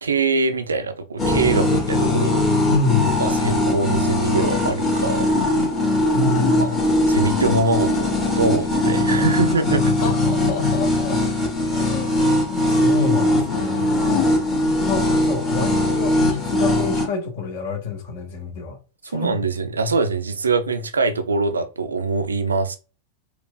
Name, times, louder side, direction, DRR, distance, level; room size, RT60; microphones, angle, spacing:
voice 1, 0.0-2.4 3.2-5.3 6.6-6.8 7.1-9.8 19.1-22.8, right 3 dB, 75° right, 0.4 m, -23 dB
sound 1, 1.2-17.1, left 2 dB, 20° left, 1.1 m, -20 dB
voice 2, 2.7-3.2 6.1-6.8 9.7-11.2 11.8-13.9 14.6-18.8 19.0-19.4, left 3 dB, 50° left, 1.0 m, -27 dB
4.3 x 2.4 x 2.3 m
figure-of-eight pair, 90°, 0 cm